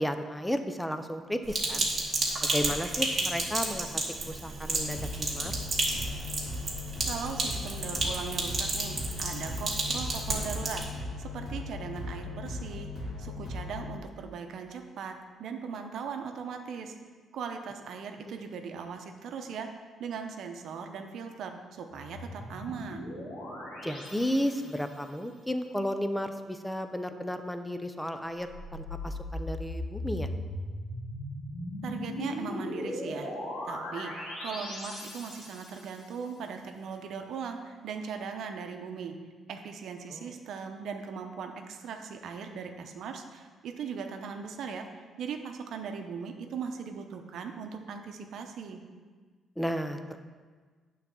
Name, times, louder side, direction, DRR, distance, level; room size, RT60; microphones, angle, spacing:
voice 1, 0.0-1.9 2.4-5.5 23.8-30.3 40.1-40.3 49.6-50.2, equal, 5° left, 8 dB, 0.6 m, -33 dB
Sink (filling or washing), 1.5-10.8, right 2 dB, 40° right, 2.1 m, -32 dB
sound 1, 4.7-14.0, left 2 dB, 60° left, 2.4 m, -38 dB
voice 2, 7.1-12.9 13.2-15.1 15.4-16.9 17.3-19.7 20.0-23.1 31.8-33.3 33.6-39.1 39.5-48.8, right 6 dB, 70° right, 5 dB, 0.8 m, -39 dB
sound 2, 21.9-25.1 28.4-36.0, left 1 dB, 90° left, 2.5 m, -38 dB
8.8 x 4.1 x 7.0 m, 1.5 s
cardioid pair, 90°, 0 cm